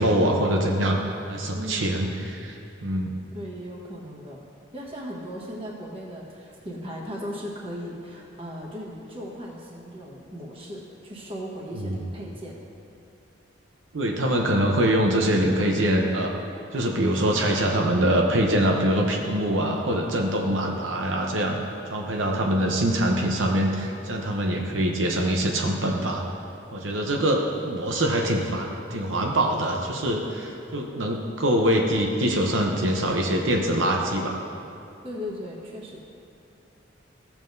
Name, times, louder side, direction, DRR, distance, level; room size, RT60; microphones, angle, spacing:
voice 1, 0.0-2.1 2.4-3.1 11.7-12.0 13.9-16.3 16.7-21.6 21.9-26.2 26.7-34.4, right 1 dB, 80° right, 0 dB, 0.8 m, -24 dB
voice 2, 1.5-2.1 3.3-4.4 4.7-12.6 35.0-36.0, equal, 30° right, -3 dB, 1.3 m, -37 dB
14.5 x 7.1 x 2.7 m, 2.7 s
head